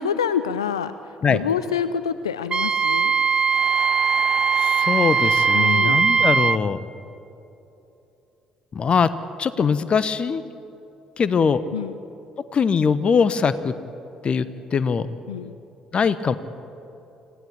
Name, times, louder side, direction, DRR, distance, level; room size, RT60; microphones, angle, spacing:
voice 1, 0.0-3.1 5.5-6.0 11.7-12.0 15.3-15.5, left 7 dB, 80° left, 13 dB, 0.4 m, -27 dB
Wind instrument woodwind instrument, 2.5-6.6, right 5 dB, 35° right, 0.6 m, -20 dB
sound 1, 3.5-5.8, equal, 10° left, 4.8 m, -37 dB
voice 2, 4.6-6.8 8.7-9.1 9.4-10.4 11.2-11.6 12.5-13.7 14.2-14.5 14.7-15.1 15.9-16.4, left 6 dB, 40° left, 15 dB, 1.0 m, -21 dB
25.5 x 16.0 x 8.6 m, 3.0 s
figure-of-eight pair, 45°, 3 cm